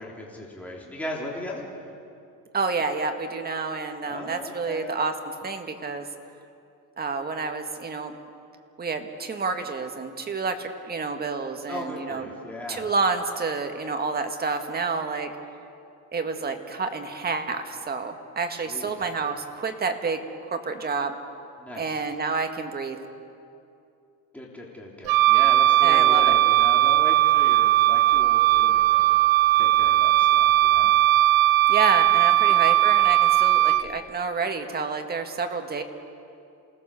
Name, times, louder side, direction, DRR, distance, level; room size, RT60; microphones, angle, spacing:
voice 1, 0.0-1.7 4.0-4.9 11.7-12.9 18.7-18.9 21.6-22.0 24.3-30.9, left 1 dB, 5° left, -3 dB, 3.3 m, -37 dB
voice 2, 2.5-5.1 5.4-6.1 7.0-8.2 8.8-12.3 12.7-15.3 16.1-20.2 20.5-21.1 21.8-23.0 25.8-26.4 31.7-35.8, right 4 dB, 25° right, 5 dB, 1.8 m, -29 dB
Wind instrument woodwind instrument, 25.1-33.9, right 14 dB, 85° right, 0.9 m, -18 dB
28.5 x 19.0 x 7.0 m, 2.6 s
cardioid pair, 145°, 35 cm